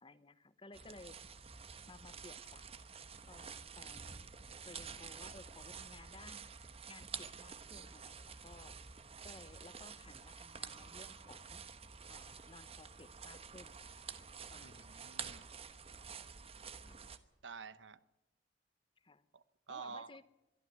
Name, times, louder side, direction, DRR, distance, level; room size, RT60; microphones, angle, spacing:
voice 1, 0.0-1.2 1.9-2.8 3.3-4.2 4.6-6.5 6.9-8.7 9.2-11.6 12.1-14.0 14.5-15.1 16.9-17.0 19.0-19.2 19.7-20.2, left 2 dB, 25° left, 0.9 m, -57 dB
sound 1, 0.7-17.2, right 6 dB, 30° right, 1.0 m, -49 dB
voice 2, 14.6-15.5 17.4-18.0 19.3-20.1, right 5 dB, 75° right, 0.9 m, -49 dB
22.5 x 13.0 x 9.2 m
head